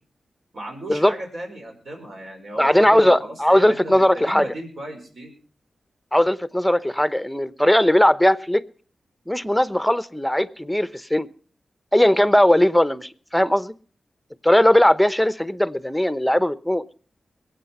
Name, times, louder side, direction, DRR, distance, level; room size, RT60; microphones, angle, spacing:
voice 1, 0.5-5.3, right 1 dB, 65° right, 2 dB, 5.2 m, -36 dB
voice 2, 2.6-4.5 6.1-8.6 9.3-11.3 11.9-13.7 14.4-16.8, left 1 dB, 5° left, 15 dB, 0.8 m, -18 dB
21.5 x 8.6 x 5.5 m, 0.43 s
cardioid pair, 60°, 0 cm